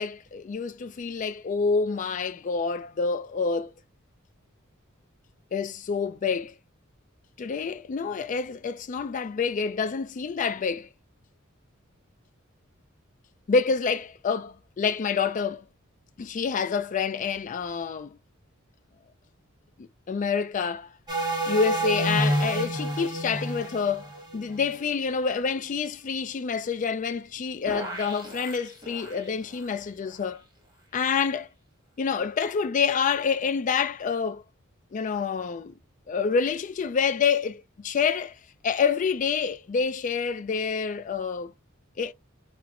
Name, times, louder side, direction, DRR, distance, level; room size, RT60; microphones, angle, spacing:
voice 1, 0.0-3.7 5.5-6.6 7.4-10.9 13.5-15.6 16.2-18.2 19.8-20.9 21.5-24.1 24.3-30.4 30.9-31.5 32.0-34.4 34.9-35.7 36.1-38.4 38.6-41.5 42.0-42.1, left 5 dB, 40° left, 0.3 m, -27 dB
sound 1, 21.1-24.9 27.7-29.2, right 1 dB, 20° right, 1.1 m, -29 dB
4.3 x 2.0 x 2.4 m
head